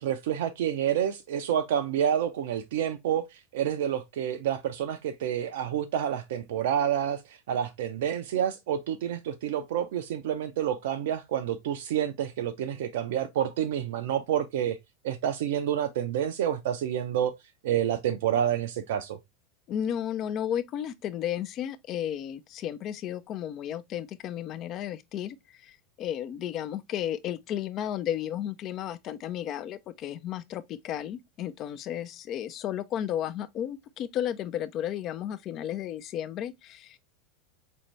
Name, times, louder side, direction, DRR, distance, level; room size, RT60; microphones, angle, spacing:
voice 1, 0.0-3.3 3.5-7.2 7.5-14.8 15.0-17.3 17.6-19.2, right 9 dB, 70° right, 0.4 m, -28 dB
voice 2, 19.7-37.0, left 10 dB, 45° left, 0.3 m, -33 dB
4.3 x 2.6 x 2.9 m
hypercardioid pair, 90°, 0 cm